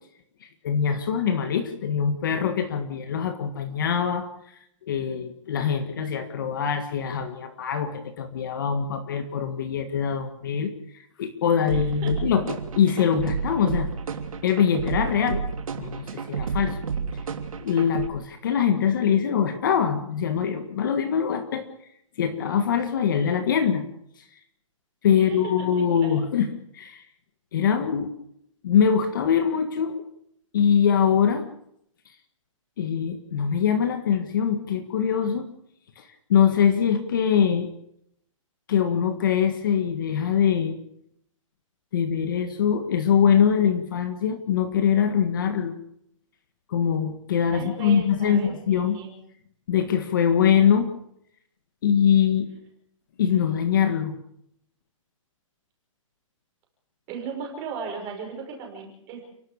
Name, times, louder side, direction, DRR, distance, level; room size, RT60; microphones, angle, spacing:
voice 1, 0.4-4.2 4.9-13.9 14.4-15.4 15.7-16.8 17.6-21.6 22.2-23.8 25.0-27.0 27.5-28.1 28.6-30.0 30.5-31.5 32.8-35.5 36.0-37.7 38.7-40.8 41.9-45.8 46.7-49.0 49.7-50.9 51.8-52.5 53.2-54.1, left 8 dB, 40° left, 8 dB, 1.7 m, -23 dB
voice 2, 11.7-12.1 25.2-25.7 25.9-26.3 47.5-49.2 57.1-59.2, right 6 dB, 20° right, 1 dB, 5.7 m, -37 dB
sound 1, 11.7-18.1, right 5 dB, 80° right, 3.1 m, -30 dB
30.0 x 12.5 x 7.2 m, 0.72 s
hypercardioid pair, 175°, 17 cm